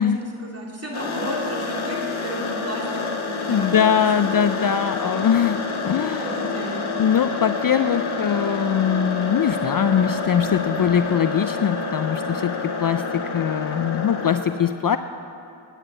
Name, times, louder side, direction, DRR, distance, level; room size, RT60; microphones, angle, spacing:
voice 1, 0.0-4.7 5.0-5.5 6.2-6.8, right 1 dB, 30° right, -5 dB, 3.7 m, -34 dB
sound 1, 0.9-14.4, left 4 dB, 75° left, 1.6 m, -28 dB
voice 2, 3.5-6.3 7.0-15.0, left 8 dB, 45° left, 10 dB, 0.4 m, -22 dB
10.0 x 9.3 x 8.9 m, 2.6 s
cardioid pair, 65°, 49 cm